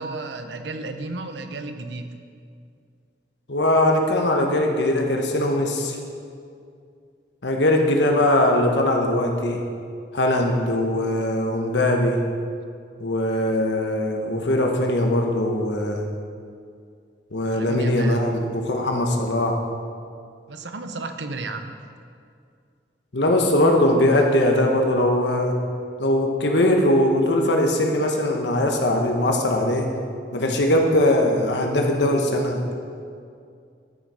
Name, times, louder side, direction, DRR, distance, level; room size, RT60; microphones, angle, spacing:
voice 1, 0.0-2.1 17.5-18.2 20.5-21.7, right 3 dB, 85° right, 7 dB, 0.8 m, -33 dB
voice 2, 3.5-6.0 7.4-9.6 10.1-12.2 13.0-16.0 17.3-19.6 23.1-25.6 26.0-29.9 30.3-32.6, left 1 dB, 85° left, 2 dB, 1.2 m, -21 dB
13.0 x 6.6 x 4.9 m, 2.3 s
head